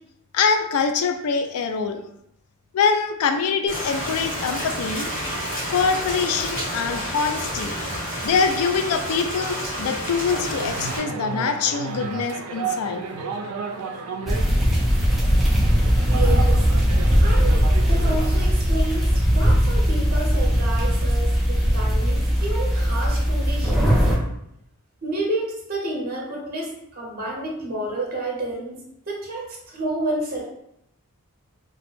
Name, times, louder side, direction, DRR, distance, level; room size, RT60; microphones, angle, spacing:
voice 1, 0.3-2.0 2.7-5.1 5.7-7.7 8.2-13.0, left 5 dB, 75° left, 7 dB, 0.3 m, -24 dB
Rain, 3.7-11.0, equal, 40° left, 1.4 m, -29 dB
sound 1, 10.3-18.5, right 4 dB, 80° right, 0.4 m, -33 dB
sound 2, 14.3-24.2, equal, ahead, 0.4 m, -19 dB
voice 2, 16.1-16.7 17.0-24.0 25.0-28.8 29.1-30.5, right 1 dB, 40° right, -2 dB, 0.7 m, -30 dB
2.4 x 2.0 x 3.0 m, 0.77 s
head